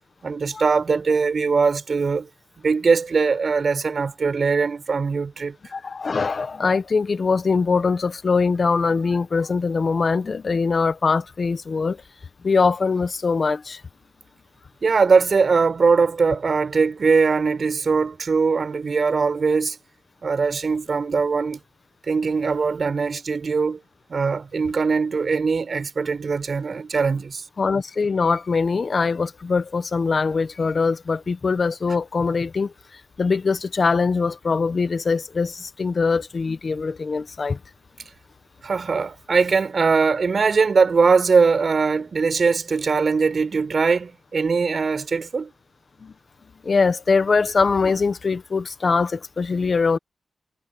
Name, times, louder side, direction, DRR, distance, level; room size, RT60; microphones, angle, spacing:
voice 1, 0.2-2.3 2.6-5.5 14.8-19.8 20.2-21.6 22.1-23.8 24.1-27.4 38.6-45.5, right 5 dB, 60° right, 6.8 m, -21 dB
voice 2, 5.7-12.0 12.4-13.8 27.6-37.6 46.0-46.1 46.6-50.0, left 4 dB, 55° left, 1.3 m, -22 dB
cardioid pair, 80°, 0 cm